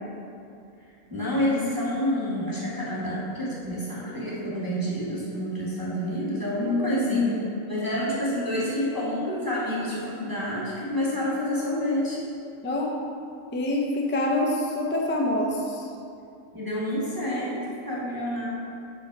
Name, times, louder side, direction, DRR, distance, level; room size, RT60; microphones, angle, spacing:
voice 1, 1.1-7.4 7.7-12.2 16.5-18.5, equal, 15° right, -7 dB, 1.1 m, -28 dB
voice 2, 6.6-7.6 12.6-12.9 13.5-15.9, left 2 dB, 15° left, -1 dB, 0.4 m, -26 dB
6.3 x 5.2 x 4.6 m, 2.5 s
omnidirectional pair, 1.5 m